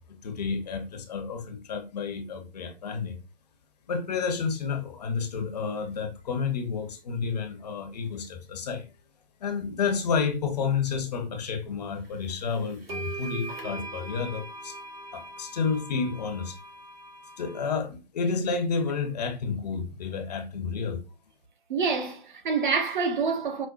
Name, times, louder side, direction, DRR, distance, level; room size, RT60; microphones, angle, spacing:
voice 1, 0.1-3.2 3.9-8.9 9.4-14.8 15.1-16.6 17.4-21.0, left 5 dB, 45° left, 0.7 m, -30 dB
sound 1, 12.3-12.4 12.9-17.7, right 3 dB, 85° right, 1.4 m, -40 dB
voice 2, 21.7-23.7, right 5 dB, 55° right, 0.8 m, -27 dB
5.0 x 2.1 x 2.4 m
hypercardioid pair, 145°, 29 cm